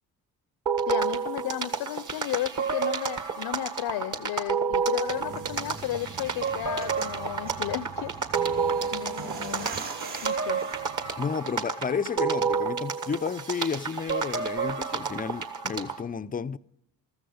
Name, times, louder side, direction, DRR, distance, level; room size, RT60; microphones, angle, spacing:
sound 1, 0.7-16.0, right 5 dB, 45° right, 1.7 m, -30 dB
voice 1, 0.9-8.1 8.9-9.7 10.2-10.6, left 14 dB, 55° left, 0.6 m, -34 dB
sound 2, 5.1-11.2, right 4 dB, 65° right, 4.6 m, -42 dB
voice 2, 11.2-16.6, left 6 dB, 20° left, 0.5 m, -32 dB
14.5 x 14.0 x 5.0 m
hypercardioid pair, 50°, 44 cm